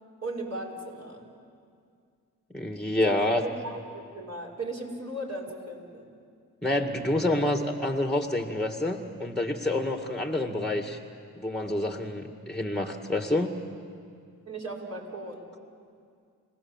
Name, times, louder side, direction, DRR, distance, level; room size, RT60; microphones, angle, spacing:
voice 1, 0.2-1.3 3.0-6.0 14.5-15.5, right 1 dB, 40° right, -2 dB, 5.5 m, -37 dB
voice 2, 2.5-3.4 6.6-11.0 11.4-13.5, left 1 dB, ahead, 5 dB, 1.9 m, -28 dB
29.5 x 17.0 x 7.4 m, 2.3 s
supercardioid pair, 45°, 39 cm